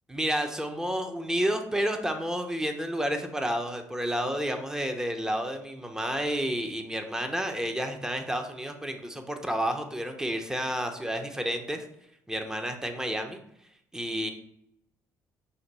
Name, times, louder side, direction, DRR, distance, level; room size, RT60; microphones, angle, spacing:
voice 1, 0.1-11.8 12.3-13.4 13.9-14.3, equal, 10° right, 5 dB, 0.9 m, -30 dB
7.1 x 2.6 x 5.4 m, 0.77 s
supercardioid pair, 70°, 7 cm